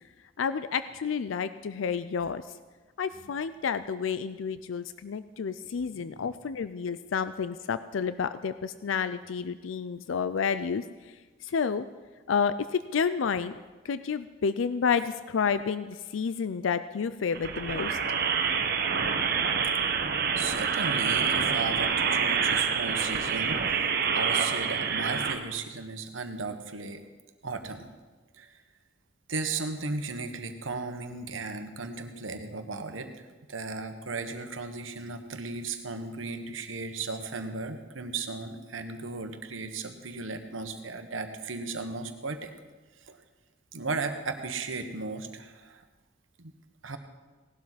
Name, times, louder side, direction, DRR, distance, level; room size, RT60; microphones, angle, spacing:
voice 1, 0.4-2.4 3.0-10.8 11.4-11.9 12.3-13.6 13.8-18.0, left 6 dB, 75° left, 13 dB, 0.4 m, -30 dB
voice 2, 5.9-6.2 20.4-27.0 27.4-27.9 28.3-28.6 29.3-42.5 43.0-43.2 43.7-45.8 46.4-46.5 46.8-47.0, right 3 dB, 80° right, 7 dB, 1.3 m, -36 dB
sound 1, 17.3-25.3, right 6 dB, 55° right, 1.1 m, -27 dB
18.0 x 12.0 x 4.1 m, 1.3 s
head